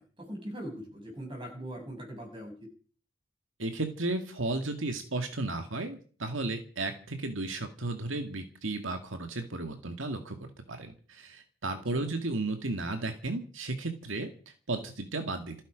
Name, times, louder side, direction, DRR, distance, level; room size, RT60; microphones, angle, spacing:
voice 1, 0.0-2.5 11.9-12.0, equal, 25° right, 2 dB, 7.4 m, -41 dB
voice 2, 3.6-10.4 10.7-14.3 14.7-15.5, right 2 dB, 70° right, 6 dB, 2.0 m, -34 dB
28.0 x 10.0 x 5.1 m, 0.42 s
head